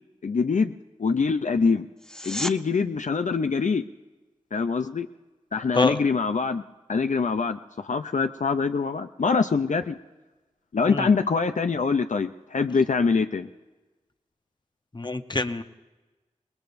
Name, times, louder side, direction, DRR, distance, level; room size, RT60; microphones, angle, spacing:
voice 1, 0.2-0.7 1.0-1.9 2.2-3.8 4.5-5.1 5.5-6.6 6.9-10.0 10.7-13.5, left 4 dB, 70° left, 8 dB, 0.5 m, -24 dB
sound 1, 2.0-2.6 13.9-14.0, equal, 5° left, 0.7 m, -33 dB
voice 2, 14.9-15.6, left 3 dB, 35° left, 9 dB, 0.8 m, -25 dB
27.0 x 20.0 x 2.6 m, 1.2 s
wide cardioid pair, 50°, 13 cm